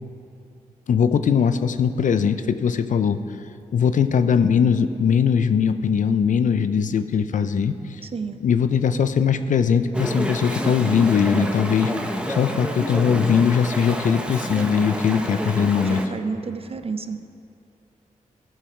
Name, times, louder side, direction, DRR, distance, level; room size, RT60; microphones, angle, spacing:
voice 1, 0.9-3.2 3.7-7.7 8.4-11.9 12.3-16.0, left 7 dB, 65° left, 11 dB, 0.5 m, -20 dB
voice 2, 8.0-8.4 15.1-15.3 15.8-17.2, right 4 dB, 45° right, 10 dB, 0.5 m, -31 dB
Chatter / Stream, 9.9-16.1, equal, 5° right, 0.8 m, -28 dB
14.0 x 5.0 x 5.0 m, 2.7 s
cardioid pair, 65°, 14 cm